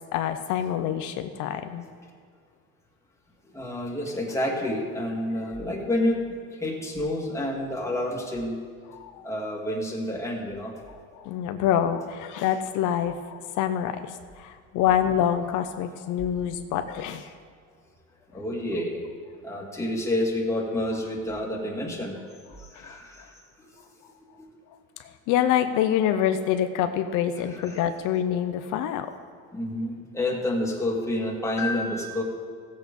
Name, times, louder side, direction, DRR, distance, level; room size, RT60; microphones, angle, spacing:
voice 1, 0.1-1.8 8.9-9.3 11.1-17.3 22.8-23.0 25.0-29.1, left 10 dB, 80° left, 8 dB, 0.8 m, -26 dB
voice 2, 3.5-6.2 6.5-8.6 9.2-10.7 18.3-19.1 19.4-22.2 22.5-23.7 24.4-24.5 27.4-27.8 29.5-32.2, left 1 dB, 10° left, -2 dB, 2.2 m, -29 dB
16.0 x 7.7 x 5.3 m, 2.1 s
cardioid pair, 140°, 30 cm